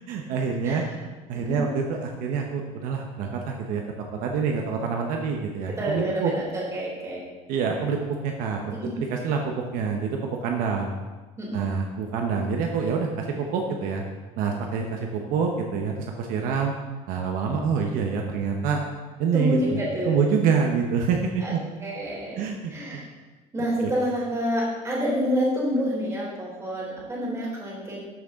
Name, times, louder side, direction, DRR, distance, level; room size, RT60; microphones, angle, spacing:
voice 1, 0.1-0.8 1.3-3.8 4.2-6.3 7.5-11.0 11.5-14.0 14.4-16.7 17.1-18.8 19.2-21.6 22.4-23.0 23.8-23.9, right 5 dB, 75° right, 2 dB, 1.1 m, -26 dB
voice 2, 1.3-1.6 5.8-7.2 8.7-8.9 11.4-11.6 19.3-20.2 21.4-21.5 21.8-22.4 22.7-23.0 23.5-28.0, equal, 20° right, -4 dB, 3.5 m, -28 dB
13.5 x 6.6 x 3.8 m, 1.3 s
cardioid pair, 140°, 14 cm